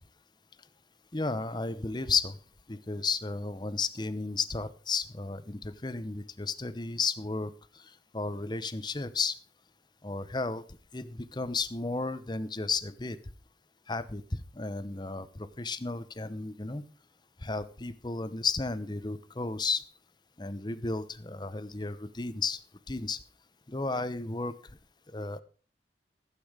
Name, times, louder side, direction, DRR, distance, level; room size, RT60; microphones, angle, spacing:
voice 1, 1.1-2.4 2.7-7.5 8.1-9.4 10.0-10.6 10.9-13.2 13.9-16.8 17.4-19.8 20.4-22.6 22.9-23.2 23.7-24.5 25.1-25.4, left 4 dB, 25° left, 13 dB, 0.8 m, -33 dB
15.5 x 8.6 x 5.0 m, 0.39 s
head